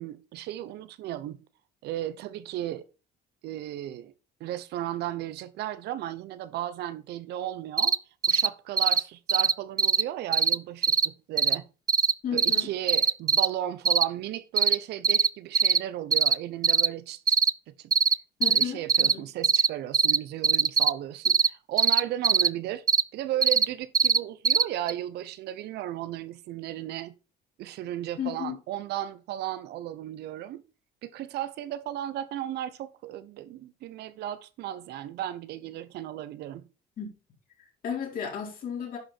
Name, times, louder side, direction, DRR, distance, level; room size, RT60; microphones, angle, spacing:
voice 1, 0.0-1.4 1.8-2.8 3.4-4.1 4.4-8.0 8.3-11.6 12.3-17.4 17.7-17.9 18.5-22.8 23.1-27.1 27.6-30.6 31.0-36.6, right 12 dB, 75° right, 0.9 m, -35 dB
sound 1, 7.8-8.0 8.2-8.5 8.8-9.0 9.3-9.5 9.8-10.0 10.3-10.6 10.8-11.1 11.4-11.6 11.9-12.1 12.4-12.6 12.9-13.5 13.8-14.0 14.6-14.8 15.0-15.3 15.5-15.8 16.1-16.3 16.6-16.9 17.3-17.5 17.9-18.1 18.4-18.6 18.9-19.1 19.4-19.7 19.9-20.2 20.4-20.9 21.2-21.5 21.8-22.5 22.9-23.0 23.4-23.7 23.9-24.2 24.4-24.6 24.9-25.0, right 6 dB, 20° right, 0.3 m, -21 dB
voice 2, 12.2-12.7 18.4-19.3 28.2-28.6 37.0-37.1 37.6-39.0, left 8 dB, 55° left, 4.5 m, -34 dB
10.5 x 5.3 x 4.4 m
cardioid pair, 110°, 17 cm